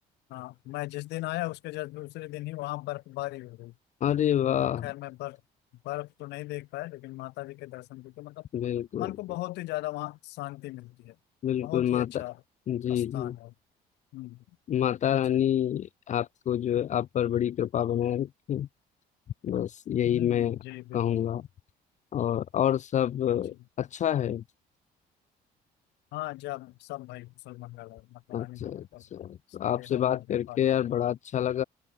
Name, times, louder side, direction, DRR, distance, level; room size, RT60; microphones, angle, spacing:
voice 1, 0.3-3.7 4.4-5.4 5.8-8.5 9.0-11.2 11.6-12.4 12.9-13.5 14.1-14.4 15.3-15.4 20.0-21.2 23.3-23.6 26.1-29.0 29.6-30.7, left 19 dB, 85° left, 2.6 m, -38 dB
voice 2, 4.0-4.9 8.5-9.1 11.4-12.1 12.7-13.3 14.7-18.7 19.4-20.6 20.9-21.4 22.1-24.4 28.3-31.6, left 10 dB, 45° left, 0.6 m, -27 dB
open air
cardioid pair, 110°, 17 cm